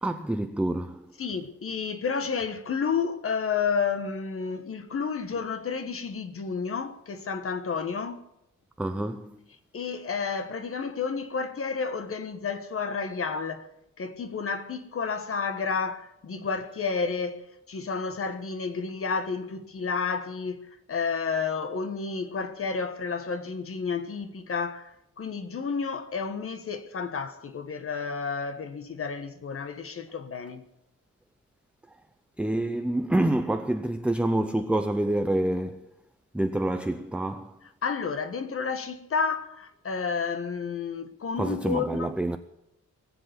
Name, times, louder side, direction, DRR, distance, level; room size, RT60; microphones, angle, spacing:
voice 1, 0.0-1.1 8.8-9.4 32.4-35.9 36.3-37.6 41.4-42.4, right 1 dB, 5° right, 0.5 m, -27 dB
voice 2, 1.2-8.2 9.7-13.7 14.0-17.4 17.7-20.6 20.9-30.6 37.8-42.1, left 5 dB, 50° left, 1.3 m, -31 dB
20.0 x 8.0 x 8.1 m
wide cardioid pair, 155°, 30 cm